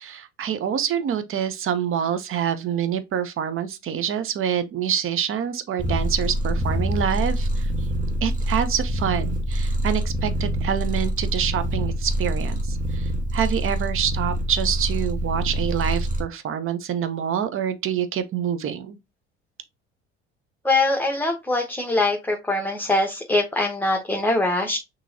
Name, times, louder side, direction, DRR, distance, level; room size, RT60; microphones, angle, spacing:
voice 1, 0.0-7.7 8.2-19.0, right 9 dB, 40° right, 0.9 m, -26 dB
Purr, 5.8-16.2, right 1 dB, 25° right, 1.5 m, -25 dB
voice 2, 20.6-24.8, left 2 dB, 5° left, 1.2 m, -23 dB
6.0 x 3.1 x 2.7 m
hypercardioid pair, 65°, 33 cm